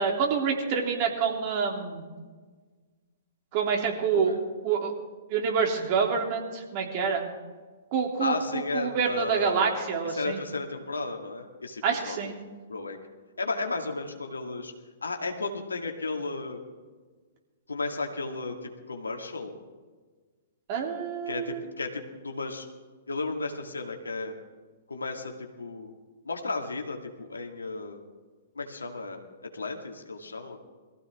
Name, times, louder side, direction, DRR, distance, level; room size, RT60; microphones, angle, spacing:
voice 1, 0.0-2.0 3.5-4.3 4.6-4.9 5.3-7.2 7.9-10.4 11.8-12.4 20.7-21.6, right 6 dB, 40° right, 1 dB, 3.1 m, -27 dB
voice 2, 8.2-9.7 10.0-12.3 12.7-13.0 13.4-14.7 15.0-16.6 17.7-19.6 21.3-22.7 23.1-24.3 24.9-25.3 25.6-25.9 26.3-28.0 28.6-29.2 29.5-30.6, left 3 dB, 80° left, 3 dB, 2.1 m, -34 dB
22.0 x 15.0 x 3.7 m, 1.4 s
figure-of-eight pair, 115°, 0 cm